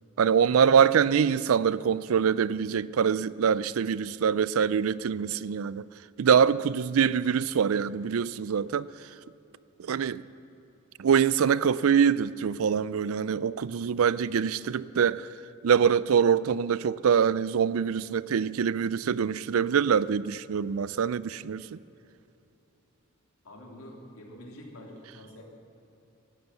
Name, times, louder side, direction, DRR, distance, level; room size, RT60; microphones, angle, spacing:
voice 1, 0.2-5.8 6.2-8.9 9.8-10.2 11.0-15.3 15.6-21.8, right 7 dB, 75° right, 0.4 m, -24 dB
voice 2, 23.4-25.4, left 1 dB, 80° left, 2.9 m, -46 dB
16.5 x 11.5 x 6.9 m
head